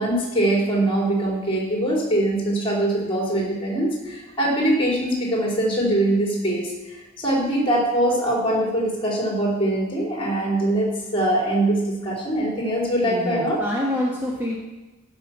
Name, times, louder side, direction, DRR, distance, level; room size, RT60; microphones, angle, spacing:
voice 1, 0.0-13.6, right 1 dB, 25° left, -3 dB, 4.0 m, -22 dB
voice 2, 13.0-14.6, left 1 dB, 10° right, -4 dB, 1.4 m, -26 dB
15.5 x 5.9 x 6.1 m, 1.1 s
head